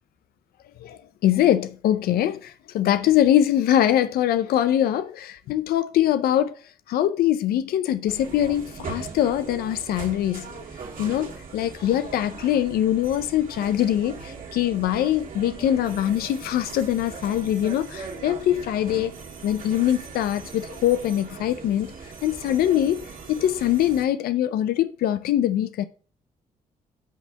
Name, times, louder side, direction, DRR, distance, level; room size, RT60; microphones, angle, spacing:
voice 1, 0.8-6.5 6.9-10.7 11.0-19.2 19.4-21.9 22.2-25.8, left 11 dB, 90° left, 0.5 m, -23 dB
sound 1, 8.1-24.1, right 5 dB, 60° right, 2.3 m, -40 dB
7.7 x 3.4 x 6.4 m
cardioid pair, 80°, 15 cm